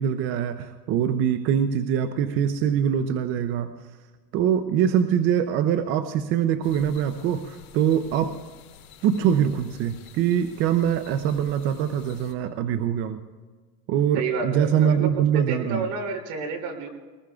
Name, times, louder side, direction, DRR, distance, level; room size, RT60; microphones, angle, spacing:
voice 1, 0.0-3.7 4.3-8.4 9.0-13.2 13.9-15.9, right 9 dB, 30° right, 10 dB, 0.4 m, -23 dB
sound 1, 6.6-12.3, left 7 dB, 65° left, 4.0 m, -49 dB
voice 2, 14.1-16.9, right 4 dB, 50° right, 3 dB, 3.1 m, -30 dB
24.0 x 19.5 x 2.3 m, 1.4 s
supercardioid pair, 135°, 48 cm